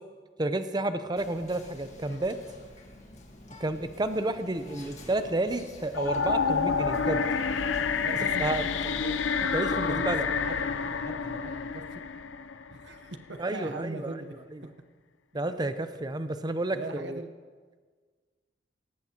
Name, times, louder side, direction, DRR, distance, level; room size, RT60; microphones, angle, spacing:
voice 1, 0.4-2.4 3.6-7.2 8.4-8.6 9.5-10.3 13.4-14.2 15.3-17.2, right 2 dB, 20° right, 10 dB, 0.6 m, -30 dB
Whispering, 1.2-8.9, left 1 dB, 40° left, 1.7 m, -49 dB
sound 1, 5.9-13.0, left 5 dB, 85° left, 0.5 m, -29 dB
voice 2, 8.0-9.2 9.7-12.0 12.7-14.3 16.7-17.4, right 2 dB, 65° right, 6 dB, 0.9 m, -41 dB
18.0 x 15.0 x 2.9 m, 1.5 s
head